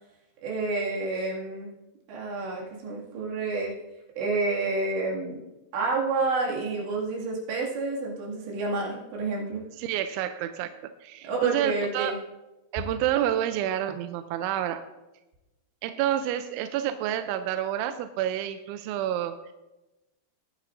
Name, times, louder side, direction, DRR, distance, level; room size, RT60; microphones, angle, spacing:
voice 1, 0.4-1.7 2.1-3.7 4.2-5.4 5.7-9.6 11.2-12.2, right 3 dB, 65° right, -4 dB, 4.3 m, -29 dB
voice 2, 9.8-10.7 11.0-12.2 12.7-14.8 15.8-19.4, right 11 dB, 85° right, 8 dB, 2.8 m, -29 dB
20.5 x 9.2 x 2.6 m, 1.0 s
omnidirectional pair, 5.8 m